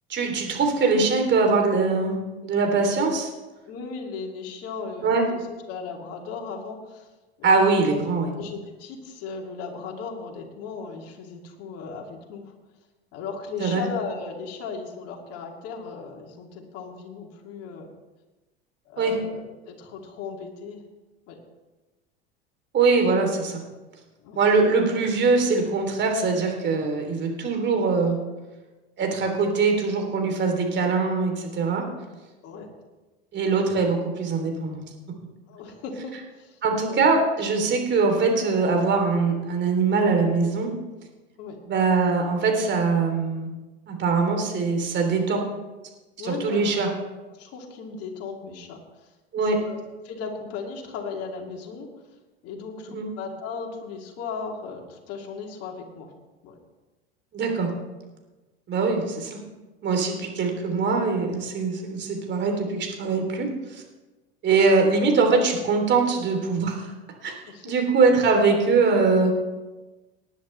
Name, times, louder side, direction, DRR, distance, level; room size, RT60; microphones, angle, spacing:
voice 1, 0.1-2.2 2.4-3.3 5.0-5.2 7.4-8.3 13.6-13.8 19.0-19.1 22.7-23.6 24.3-28.2 29.0-31.8 33.3-34.8 36.6-40.7 41.7-43.5 43.9-45.4 46.2-46.9 49.3-49.6 52.9-53.0 57.3-57.7 58.7-59.4 59.8-63.5 63.7-63.8 64.4-66.9 67.2-67.3 67.6-69.3, right 4 dB, 35° right, 3 dB, 3.1 m, -22 dB
voice 2, 3.7-7.1 7.4-7.5 7.9-8.0 8.3-12.5 13.1-17.9 18.9-20.8 21.3-21.4 24.2-24.4 32.4-32.7 35.5-36.6 36.9-37.0 41.4-41.6 46.2-46.8 47.3-49.1 49.3-51.9 52.4-56.1 56.4-56.6 67.5-67.7, left 5 dB, 50° left, 1 dB, 2.6 m, -37 dB
19.0 x 10.5 x 3.3 m, 1.1 s
hypercardioid pair, 80°, 31 cm